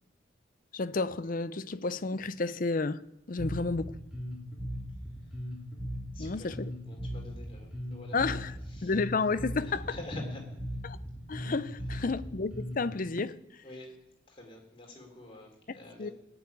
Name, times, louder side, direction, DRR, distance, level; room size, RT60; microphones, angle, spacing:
voice 1, 0.7-3.0 3.3-3.9 6.2-6.7 8.1-8.5 8.8-10.0 10.8-11.0 11.3-13.4 15.7-16.1, left 3 dB, 40° left, 0.6 m, -31 dB
Bass guitar, 3.4-13.0, equal, 5° right, 3.1 m, -38 dB
voice 2, 6.1-6.5 6.9-8.3 8.7-8.9 9.6-10.5 12.0-12.1 13.6-14.0 14.3-16.1, left 1 dB, 25° left, 4.0 m, -46 dB
20.0 x 7.1 x 9.7 m
head